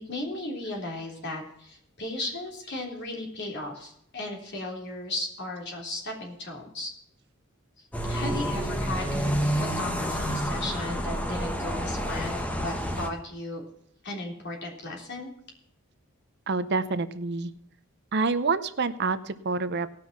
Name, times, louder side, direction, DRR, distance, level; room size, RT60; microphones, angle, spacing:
voice 1, 0.1-6.9 8.0-13.6 14.0-15.3, left 2 dB, 55° left, 1 dB, 3.4 m, -36 dB
sound 1, 7.9-13.1, equal, 5° left, 1.1 m, -29 dB
voice 2, 16.5-17.5 18.1-19.9, right 4 dB, 55° right, 13 dB, 0.7 m, -27 dB
18.5 x 6.2 x 5.9 m, 0.71 s
head